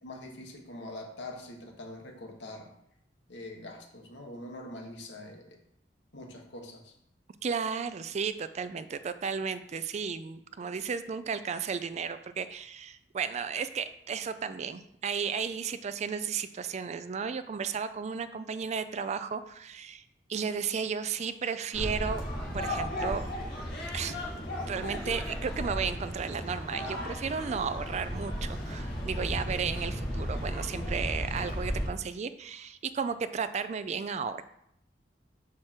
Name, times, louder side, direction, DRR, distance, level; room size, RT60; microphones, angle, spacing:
voice 1, 0.0-2.7 3.3-5.6 6.1-6.9, left 1 dB, 75° left, 1 dB, 1.3 m, -44 dB
voice 2, 7.4-20.0 20.3-22.2 22.5-23.2 23.9-24.2 24.7-34.4, right 6 dB, 40° right, 11 dB, 0.4 m, -34 dB
sound 1, 21.7-31.9, equal, 55° left, 1.9 m, -35 dB
6.0 x 4.8 x 4.4 m, 0.74 s
head